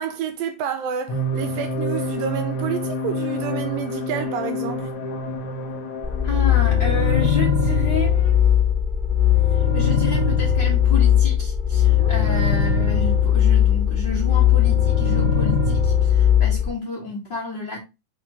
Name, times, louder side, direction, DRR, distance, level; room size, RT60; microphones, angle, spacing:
voice 1, 0.0-4.9 11.9-12.1, right 8 dB, 85° right, 2.4 m, -29 dB
sound 1, 1.1-7.3, left 1 dB, 65° left, 1.4 m, -28 dB
sound 2, 6.0-16.7, left 9 dB, 15° right, 1.2 m, -18 dB
voice 2, 6.2-8.4 9.5-17.8, left 3 dB, 35° left, 2.3 m, -30 dB
6.2 x 3.9 x 4.5 m
omnidirectional pair, 4.0 m